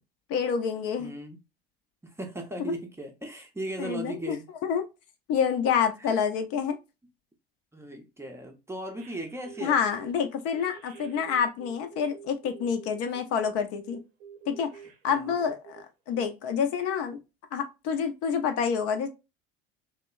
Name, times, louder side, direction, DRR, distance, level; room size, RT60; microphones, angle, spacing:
voice 1, 0.3-1.1 3.8-4.4 4.6-4.8 5.3-6.8 9.6-14.0 14.5-14.7 15.0-17.2 17.5-19.1, left 7 dB, 50° left, 0.5 m, -28 dB
voice 2, 1.0-1.4 2.0-4.5 6.0-6.2 7.7-9.8 15.1-15.4, right 1 dB, 10° right, 0.5 m, -37 dB
sound 1, 9.0-10.1 10.5-13.2 13.8-15.8 16.1-16.3, right 7 dB, 80° right, 0.7 m, -48 dB
2.8 x 2.1 x 2.2 m
hypercardioid pair, 70°, 31 cm